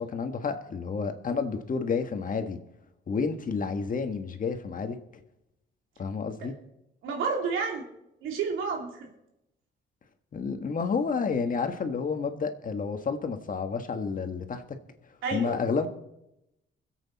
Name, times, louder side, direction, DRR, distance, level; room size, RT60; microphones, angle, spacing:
voice 1, 0.0-2.6 3.1-5.0 6.0-6.5 10.3-14.6 15.3-15.9, left 5 dB, 45° left, 7 dB, 1.6 m, -30 dB
voice 2, 7.0-7.8 8.2-9.1 15.2-15.6, right 5 dB, 90° right, 2 dB, 2.6 m, -30 dB
23.5 x 8.2 x 4.1 m, 0.85 s
cardioid pair, 90°, 20 cm